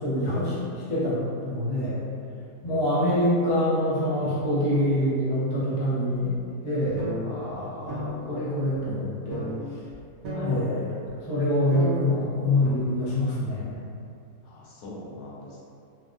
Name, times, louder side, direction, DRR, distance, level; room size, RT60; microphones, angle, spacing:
voice 1, 0.0-2.0 2.6-6.3 6.6-9.4 10.4-10.8 11.3-13.7, left 1 dB, 45° left, -9 dB, 0.3 m, -25 dB
voice 2, 2.6-3.0 10.3-11.2 14.4-15.7, left 2 dB, 85° left, -5 dB, 1.1 m, -42 dB
sound 1, 7.0-7.2 7.5-7.6 7.9-8.1 8.7-8.8 9.3-9.5 9.9-10.0 10.2-10.5 11.1-11.2 11.7-12.0 12.6-12.7, right 1 dB, 70° right, 1.1 m, -32 dB
3.3 x 2.2 x 2.5 m, 2.6 s
omnidirectional pair, 1.6 m